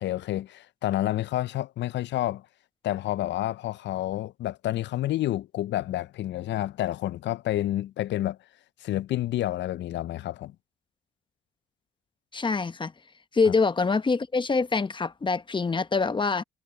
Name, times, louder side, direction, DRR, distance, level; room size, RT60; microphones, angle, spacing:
voice 1, 0.0-2.5 2.8-8.4 8.8-10.6 13.5-13.6, left 14 dB, 65° left, 0.4 m, -29 dB
voice 2, 12.3-12.9 13.3-16.4, left 4 dB, 25° left, 0.9 m, -25 dB
cardioid pair, 90°, 20 cm